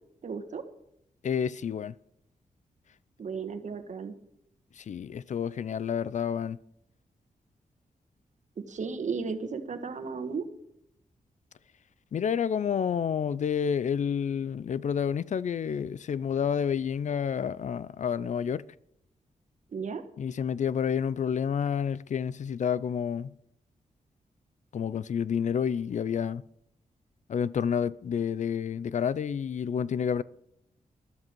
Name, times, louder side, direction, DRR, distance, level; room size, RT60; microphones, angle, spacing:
voice 1, 0.2-0.6 3.2-4.1 8.6-10.5 19.7-20.0, right 5 dB, 60° right, 1.5 m, -34 dB
voice 2, 1.2-1.9 4.8-6.6 12.1-18.6 20.2-23.3 24.7-26.4 27.3-30.2, left 7 dB, 60° left, 0.5 m, -29 dB
12.5 x 12.5 x 4.6 m
wide cardioid pair, 95°, 14 cm